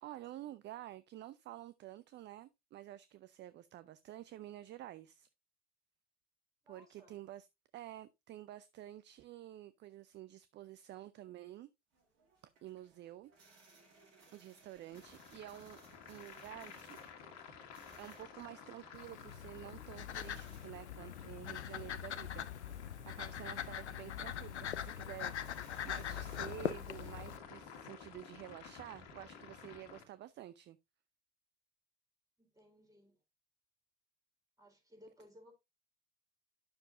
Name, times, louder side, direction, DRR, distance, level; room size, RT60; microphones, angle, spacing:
voice 1, 0.0-5.3 6.7-7.5 7.7-11.7 12.6-13.3 14.3-15.8 16.1-17.0 18.0-25.3 25.8-30.8, right 13 dB, 35° right, 0.5 m, -50 dB
voice 2, 6.6-7.2 32.4-33.2 34.6-35.5, equal, 10° right, 4.0 m, -61 dB
sound 1, 11.9-29.8, right 3 dB, 65° right, 5.4 m, -67 dB
sound 2, 14.9-30.0, left 6 dB, 55° left, 1.8 m, -54 dB
sound 3, 18.9-27.4, left 9 dB, 85° left, 0.6 m, -42 dB
10.5 x 6.7 x 2.5 m
figure-of-eight pair, 70°, 33 cm